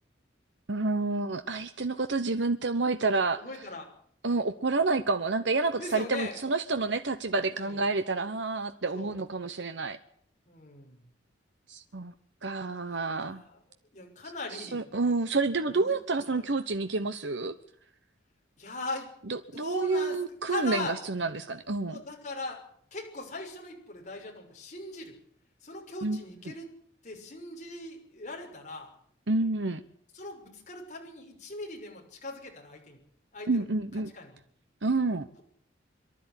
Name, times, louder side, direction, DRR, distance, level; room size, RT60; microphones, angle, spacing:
voice 1, 0.7-3.4 4.2-10.0 11.7-12.1 12.4-13.4 14.5-17.5 19.3-22.0 26.0-26.2 29.3-29.8 33.5-34.1 34.8-35.3, right 3 dB, 70° right, 9 dB, 1.0 m, -29 dB
voice 2, 3.4-3.9 5.8-6.4 7.6-7.8 8.9-9.1 10.5-11.0 12.9-13.6 13.9-14.8 15.7-16.0 16.3-16.4 18.6-19.1 19.5-20.2 20.5-21.0 21.9-22.6 22.9-25.2 25.6-26.7 27.0-28.9 30.1-33.0 33.3-33.6 34.1-34.4, left 2 dB, 40° left, 1 dB, 6.2 m, -40 dB
23.5 x 13.0 x 9.9 m, 0.63 s
head